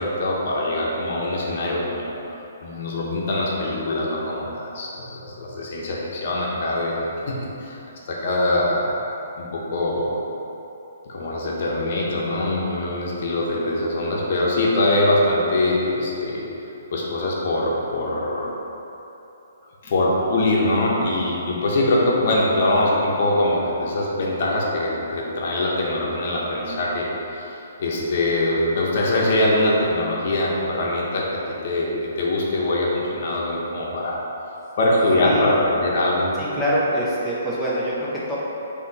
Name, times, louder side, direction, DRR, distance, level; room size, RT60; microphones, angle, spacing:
voice 1, 0.0-2.1 2.6-7.8 8.1-8.9 9.4-10.2 11.1-16.4 16.9-18.5 19.8-31.3 31.6-34.2 34.8-36.3, left 1 dB, 50° left, -3 dB, 0.8 m, -23 dB
voice 2, 36.4-38.4, equal, ahead, -10 dB, 0.5 m, -24 dB
4.2 x 2.8 x 4.0 m, 3.0 s
hypercardioid pair, 160°, 0 cm